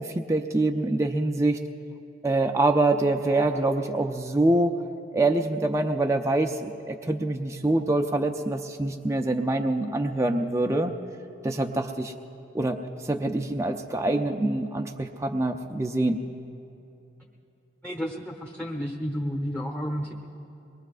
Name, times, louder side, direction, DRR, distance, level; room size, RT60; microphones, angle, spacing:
voice 1, 0.0-1.6 2.2-4.7 5.1-10.9 11.4-12.1 12.5-12.8 13.1-16.2, right 2 dB, 15° right, 3 dB, 0.4 m, -25 dB
voice 2, 17.8-20.1, equal, 10° left, 0 dB, 1.0 m, -31 dB
23.0 x 21.0 x 2.5 m, 2.8 s
head